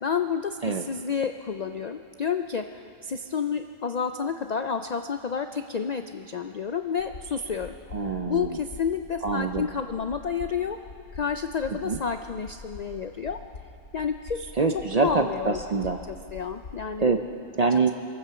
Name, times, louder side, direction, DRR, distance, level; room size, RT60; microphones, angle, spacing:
voice 1, 0.0-7.7 8.2-10.8 11.1-13.4 13.9-15.6 16.1-17.1, left 6 dB, 85° left, 7 dB, 0.3 m, -30 dB
sound 1, 7.0-17.1, left 4 dB, 55° left, 1.3 m, -45 dB
voice 2, 7.9-8.6 9.2-9.7 11.8-12.0 14.6-16.0 17.0-17.2 17.6-17.9, right 4 dB, 50° right, 5 dB, 0.5 m, -25 dB
23.5 x 9.0 x 6.8 m, 2.5 s
omnidirectional pair, 1.4 m